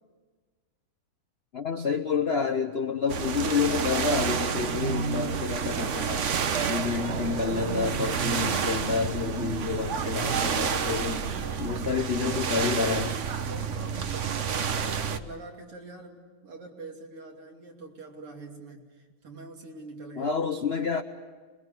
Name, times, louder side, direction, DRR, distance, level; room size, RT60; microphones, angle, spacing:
voice 1, 1.5-6.3 6.7-13.1 20.2-21.0, left 5 dB, 70° left, 7 dB, 0.6 m, -29 dB
sound 1, 3.1-15.2, right 7 dB, 55° right, 0.8 m, -29 dB
voice 2, 10.8-11.9 12.2-20.4, right 3 dB, 90° right, 1 dB, 3.8 m, -45 dB
27.0 x 21.0 x 8.1 m, 1.4 s
omnidirectional pair, 2.4 m